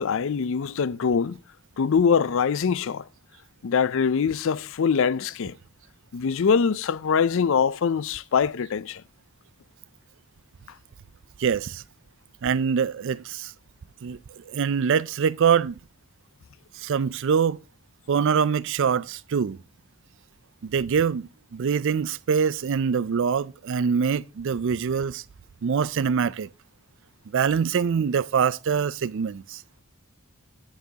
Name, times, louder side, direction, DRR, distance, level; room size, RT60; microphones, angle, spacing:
voice 1, 0.0-1.4 1.8-3.0 3.6-5.6 6.1-9.0, left 6 dB, 60° left, 0.4 m, -23 dB
voice 2, 11.4-11.8 12.4-13.5 14.0-15.8 16.7-17.6 18.1-19.6 20.6-25.2 25.6-26.5 27.3-29.6, right 6 dB, 55° right, 0.4 m, -24 dB
11.5 x 9.5 x 2.8 m
head